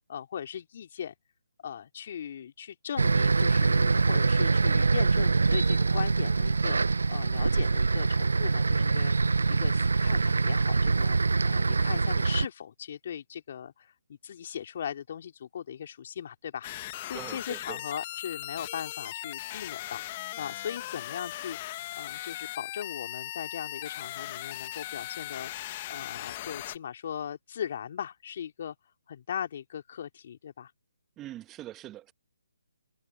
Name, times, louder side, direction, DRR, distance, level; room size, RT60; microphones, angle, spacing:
voice 1, 0.1-1.1 1.6-9.1 9.5-16.7 17.0-20.0 20.4-21.6 22.0-28.7 29.1-30.7, left 8 dB, 50° left, 3.1 m, -38 dB
sound 1, 3.0-12.5, right 4 dB, 75° right, 0.6 m, -24 dB
sound 2, 16.6-26.8, left 15 dB, 30° left, 1.4 m, -38 dB
voice 2, 17.1-17.8 31.2-32.1, right 14 dB, 15° right, 1.4 m, -42 dB
figure-of-eight pair, 150°, 0 cm